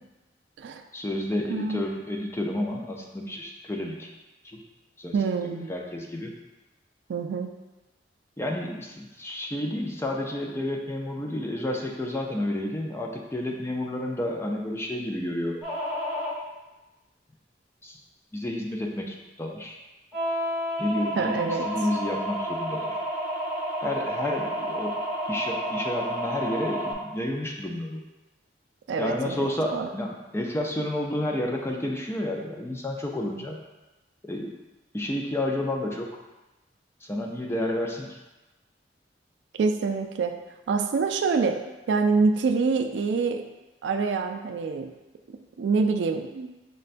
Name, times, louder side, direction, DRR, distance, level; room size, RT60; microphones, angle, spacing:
voice 1, 0.9-4.1 4.4-4.6 5.0-5.1 5.4-6.3 8.4-15.6 17.8-18.0 18.3-19.8 20.8-23.0 23.8-25.0 25.3-28.0 29.0-33.6 34.2-34.6 34.9-36.1 37.0-38.2, left 1 dB, 15° left, 0 dB, 0.4 m, -30 dB
voice 2, 1.5-1.8 5.1-5.7 7.1-7.5 21.2-21.7 28.9-29.9 39.6-40.4 40.7-43.5 43.8-44.9 45.3-46.5, right 4 dB, 70° right, 6 dB, 0.3 m, -26 dB
sound 1, 15.6-16.4 20.1-26.9, equal, 5° right, 1.2 m, -30 dB
6.4 x 2.2 x 2.5 m, 1.1 s
head